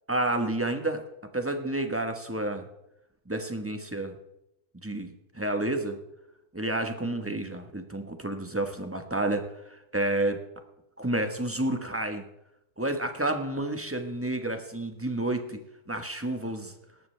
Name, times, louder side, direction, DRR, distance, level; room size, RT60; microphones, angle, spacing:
voice 1, 0.1-1.0 1.3-2.7 3.3-4.2 4.8-6.0 6.5-10.4 11.0-12.2 12.8-15.6 15.9-16.7, right 1 dB, 10° right, 6 dB, 0.8 m, -30 dB
19.0 x 13.0 x 3.3 m, 0.85 s
omnidirectional pair, 2.1 m